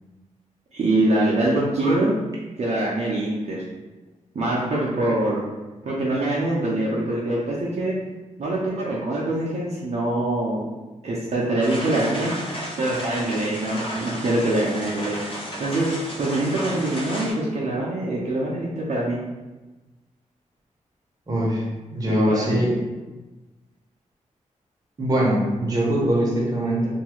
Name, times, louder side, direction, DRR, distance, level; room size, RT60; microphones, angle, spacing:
voice 1, 0.7-2.1 2.6-3.6 4.3-5.4 5.8-7.9 8.4-10.6 11.0-12.3 12.8-15.2 15.6-19.2 22.0-22.6, right 1 dB, 55° right, -6 dB, 0.5 m, -24 dB
sound 1, 11.6-17.3, equal, 40° left, 0.7 m, -33 dB
voice 2, 21.3-21.6 21.9-22.8 25.0-26.9, right 1 dB, 30° right, -5 dB, 0.8 m, -22 dB
2.6 x 2.3 x 2.9 m, 1.2 s
wide cardioid pair, 140°, 13 cm